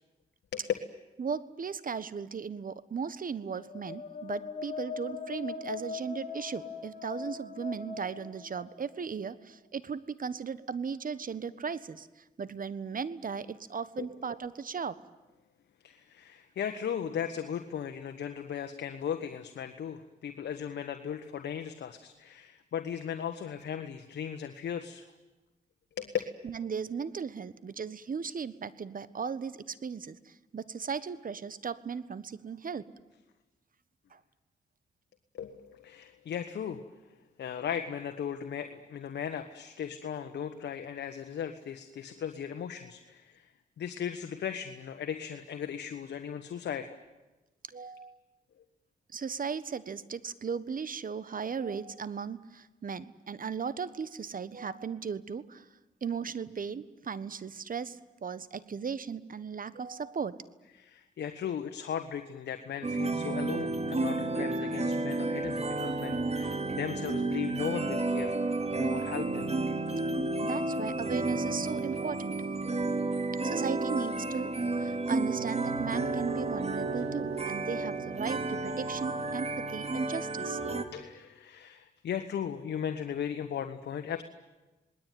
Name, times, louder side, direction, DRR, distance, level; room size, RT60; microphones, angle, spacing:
voice 1, 1.2-12.1 12.4-15.0 26.4-32.8 34.1-34.2 47.7-48.2 49.1-55.7 56.0-60.3 70.4-72.4 73.4-74.5 74.8-80.6, right 6 dB, 50° right, 15 dB, 1.4 m, -37 dB
sound 1, 3.5-9.2, left 5 dB, 40° left, 5.8 m, -41 dB
voice 2, 15.8-25.0 26.0-26.1 35.3-36.8 37.4-43.5 43.8-46.9 60.8-68.3 68.7-69.5 80.9-84.2, left 8 dB, 80° left, 6 dB, 1.5 m, -37 dB
sound 2, 62.8-80.8, right 2 dB, 35° right, 2.5 m, -31 dB
26.5 x 20.5 x 9.4 m, 1.1 s
cardioid pair, 55°, 18 cm